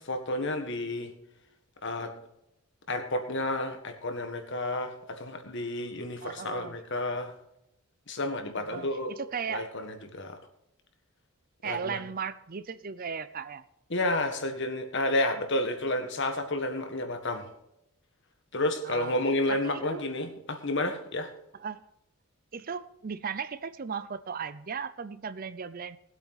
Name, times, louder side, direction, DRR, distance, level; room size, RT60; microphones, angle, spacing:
voice 1, 0.0-1.1 1.8-2.1 2.9-7.3 8.1-9.1 9.5-10.4 11.6-12.0 13.9-17.5 18.5-21.3, left 1 dB, 55° left, 6 dB, 1.7 m, -31 dB
voice 2, 6.2-6.8 8.6-9.7 11.6-13.6 18.8-19.2 19.5-20.0 21.5-21.8 22.5-26.0, right 6 dB, 40° right, 14 dB, 0.5 m, -36 dB
19.0 x 8.3 x 4.1 m, 0.83 s
head